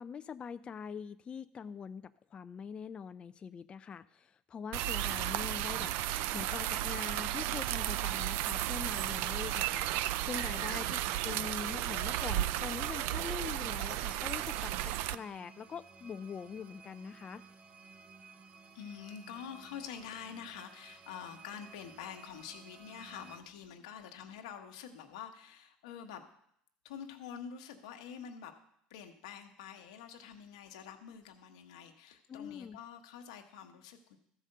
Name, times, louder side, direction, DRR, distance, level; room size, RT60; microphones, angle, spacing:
voice 1, 0.0-17.4 32.3-32.8, left 6 dB, 30° left, 11 dB, 0.3 m, -43 dB
sound 1, 4.7-15.2, right 14 dB, 70° right, 0.4 m, -34 dB
voice 2, 10.3-10.7 18.7-26.3 26.8-28.5 28.9-34.2, left 8 dB, 90° left, 5 dB, 1.1 m, -47 dB
sound 2, 14.0-23.4, right 5 dB, 35° right, 1.0 m, -56 dB
13.5 x 4.9 x 6.6 m, 0.72 s
supercardioid pair, 95°, 3 cm